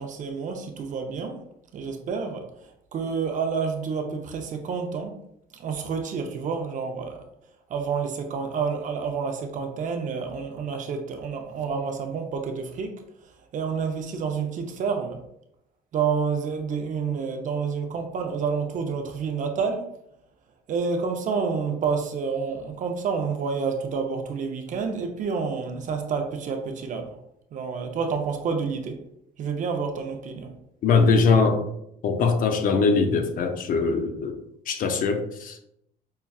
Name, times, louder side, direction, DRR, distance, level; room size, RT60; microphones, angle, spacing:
voice 1, 0.0-1.4 1.7-2.4 2.9-5.1 5.6-7.2 7.7-12.9 13.5-15.2 15.9-19.8 20.7-27.1 27.5-28.9 29.4-30.5, right 5 dB, 50° right, 5 dB, 0.6 m, -29 dB
voice 2, 30.8-31.6 32.0-34.4 34.7-35.6, left 4 dB, 55° left, 6 dB, 0.5 m, -21 dB
5.5 x 2.3 x 2.3 m, 0.77 s
cardioid pair, 110°, 17 cm